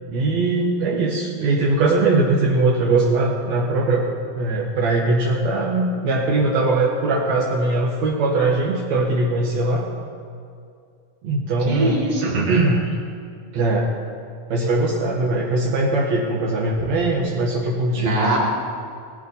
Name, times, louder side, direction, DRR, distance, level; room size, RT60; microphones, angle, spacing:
voice 1, 0.1-4.1 4.4-9.9 11.2-12.9 13.5-13.9 14.5-18.2, right 2 dB, 70° right, -2 dB, 2.6 m, -21 dB
voice 2, 11.7-12.6 16.8-16.9 17.9-18.4, right 1 dB, 35° right, -3 dB, 3.5 m, -23 dB
18.0 x 13.0 x 5.6 m, 2.4 s
omnidirectional pair, 3.3 m